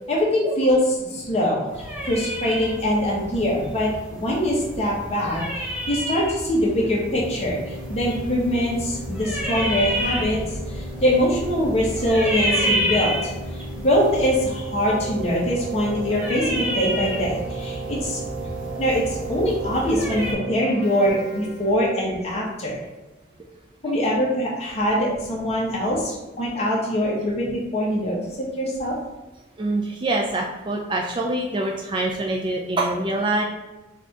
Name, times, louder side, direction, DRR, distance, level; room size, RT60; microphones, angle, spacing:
voice 1, 0.1-1.6 2.1-7.6 7.9-10.4 10.7-13.3 13.8-18.5 18.8-22.8 23.8-28.9, equal, 35° left, -4 dB, 1.3 m, -23 dB
sound 1, 1.7-20.3, equal, 5° right, 0.9 m, -30 dB
Keyboard (musical), 7.1-22.1, right 3 dB, 60° right, 0.7 m, -36 dB
voice 2, 29.6-33.4, right 2 dB, 25° right, 0 dB, 0.4 m, -25 dB
4.2 x 2.8 x 4.6 m, 1.1 s
head